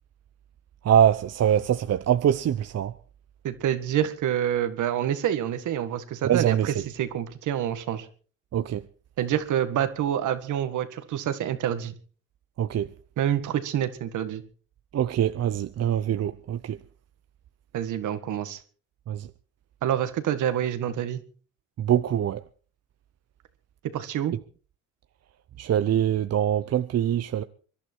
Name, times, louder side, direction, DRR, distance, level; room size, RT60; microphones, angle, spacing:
voice 1, 0.8-2.9 6.2-6.7 8.5-8.8 12.6-12.9 14.9-16.8 19.1-19.3 21.8-22.4 25.6-27.4, right 10 dB, 55° right, 0.8 m, -23 dB
voice 2, 3.4-8.1 9.2-11.9 13.2-14.4 17.7-18.6 19.8-21.2 23.9-24.4, right 10 dB, 80° right, 2.0 m, -27 dB
25.0 x 11.5 x 4.6 m
cardioid pair, 90°, 30 cm